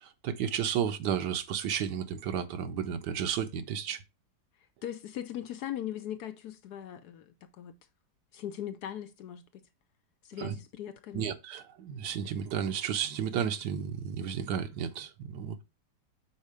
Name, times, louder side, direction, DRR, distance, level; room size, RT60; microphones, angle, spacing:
voice 1, 0.0-4.0 10.4-10.6 11.1-15.6, right 8 dB, 75° right, 1.3 m, -32 dB
voice 2, 4.8-7.8 8.3-9.6 10.2-11.3, left 11 dB, 70° left, 1.1 m, -39 dB
5.5 x 4.2 x 4.8 m
omnidirectional pair, 1.8 m